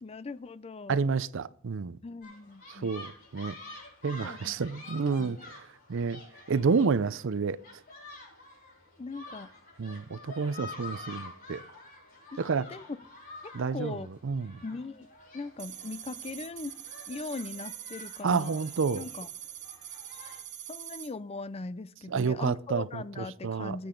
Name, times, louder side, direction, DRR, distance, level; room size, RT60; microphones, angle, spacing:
voice 1, 0.0-1.0 2.0-2.9 4.2-4.5 5.2-5.4 9.0-9.5 12.3-12.8 13.4-14.1 14.6-15.1 15.3-16.8 17.1-18.6 18.9-19.3 20.7-23.9, left 3 dB, 30° left, 0.5 m, -40 dB
voice 2, 0.9-2.0 2.8-3.5 4.0-5.4 5.9-6.2 6.5-7.6 9.8-11.6 12.4-12.7 13.5-13.9 14.2-14.6 18.2-19.0 22.1-23.8, right 5 dB, 65° right, 0.5 m, -29 dB
sound 1, 2.2-20.4, left 2 dB, 45° left, 5.9 m, -48 dB
sound 2, 15.6-21.1, right 11 dB, 35° right, 0.8 m, -44 dB
19.0 x 8.5 x 3.8 m
head